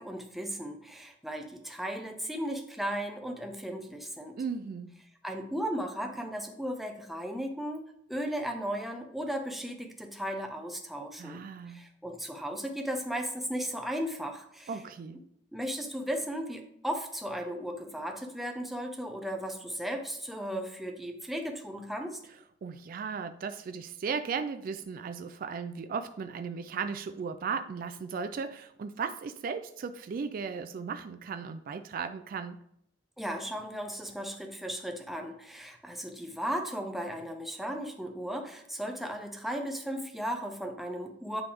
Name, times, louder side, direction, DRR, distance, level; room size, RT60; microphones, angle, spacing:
voice 1, 0.0-4.4 5.2-7.8 8.1-14.7 15.5-22.2 33.2-41.4, equal, ahead, 3 dB, 0.7 m, -36 dB
voice 2, 4.4-5.0 11.2-11.9 14.7-15.2 22.6-32.6, right 5 dB, 50° right, 10 dB, 0.3 m, -36 dB
9.3 x 3.4 x 3.4 m, 0.74 s
head